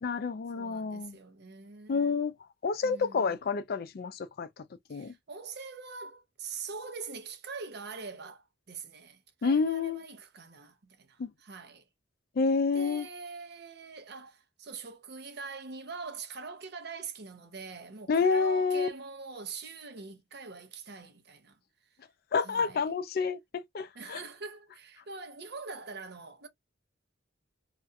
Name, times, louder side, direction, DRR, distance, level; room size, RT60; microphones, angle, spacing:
voice 1, 0.0-1.2 1.9-2.3 2.6-4.5 4.9-5.1 9.4-10.0 11.2-11.3 12.4-13.1 18.1-18.9 22.3-24.2, left 5 dB, 50° left, 0.4 m, -29 dB
voice 2, 0.5-2.2 2.8-3.4 4.9-11.9 12.7-21.6 22.4-22.9 23.9-26.5, right 4 dB, 55° right, 0.6 m, -44 dB
2.4 x 2.2 x 2.5 m
head